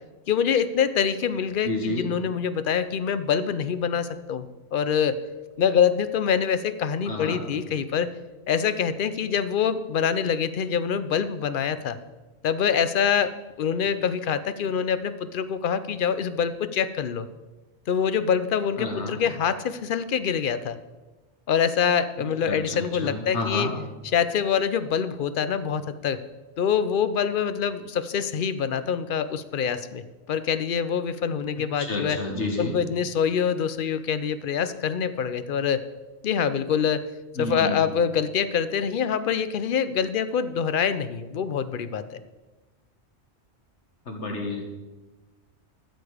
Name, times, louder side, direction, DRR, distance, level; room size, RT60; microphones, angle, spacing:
voice 1, 0.3-4.5 4.7-5.2 5.6-8.1 8.5-12.0 12.4-17.3 17.9-20.8 21.5-23.7 24.1-26.2 26.6-30.0 30.3-32.2 32.6-35.8 36.2-37.0 37.4-42.2, left 7 dB, 55° left, 12 dB, 0.7 m, -25 dB
voice 2, 1.6-2.1 7.1-7.4 18.8-19.2 22.4-23.7 31.6-32.8 37.4-37.9 44.1-44.7, left 2 dB, 85° left, 1 dB, 2.0 m, -30 dB
13.0 x 6.9 x 4.9 m, 1.2 s
omnidirectional pair, 1.2 m